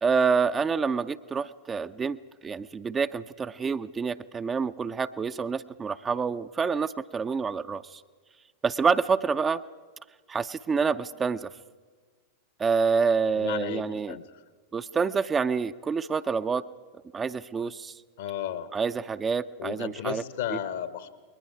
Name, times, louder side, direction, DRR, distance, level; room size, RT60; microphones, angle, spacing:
voice 1, 0.0-8.0 8.6-9.6 10.3-11.5 12.6-14.2 14.7-16.6 17.1-17.9 18.7-20.2 20.5-20.6, right 5 dB, 20° right, 11 dB, 0.5 m, -27 dB
voice 2, 13.3-14.3 18.2-18.7 19.6-21.1, left 10 dB, 55° left, 14 dB, 1.1 m, -34 dB
29.0 x 21.5 x 4.7 m, 1.5 s
figure-of-eight pair, 90°, 0 cm